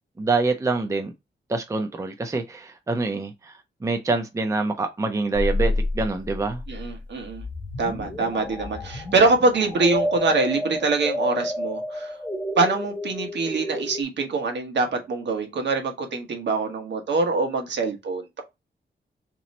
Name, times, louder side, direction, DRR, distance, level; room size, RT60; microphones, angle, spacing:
voice 1, 0.2-1.1 1.5-3.5 3.8-6.6, right 3 dB, 15° right, 0.5 m, -25 dB
sound 1, 5.3-14.0, left 1 dB, 10° left, 0.9 m, -29 dB
voice 2, 6.7-7.4 7.8-12.1 12.6-18.4, right 3 dB, 70° right, 1.1 m, -24 dB
3.1 x 2.9 x 4.0 m
wide cardioid pair, 140°, 19 cm